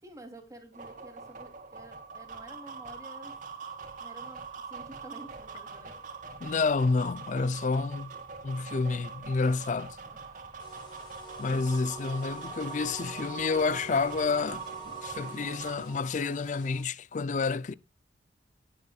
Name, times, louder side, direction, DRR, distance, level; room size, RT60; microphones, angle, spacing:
voice 1, 0.0-3.3 4.0-5.9 6.2-6.4 7.4-7.5 10.0-10.2 11.5-11.6, right 1 dB, 20° right, 2.8 m, -50 dB
sound 1, 0.7-15.9, right 5 dB, 45° right, 1.9 m, -43 dB
voice 2, 6.4-8.1 8.4-10.0 11.4-14.6 15.0-17.7, left 4 dB, 40° left, 0.4 m, -29 dB
sound 2, 10.6-16.8, right 1 dB, 25° left, 5.3 m, -45 dB
18.5 x 6.8 x 2.3 m
head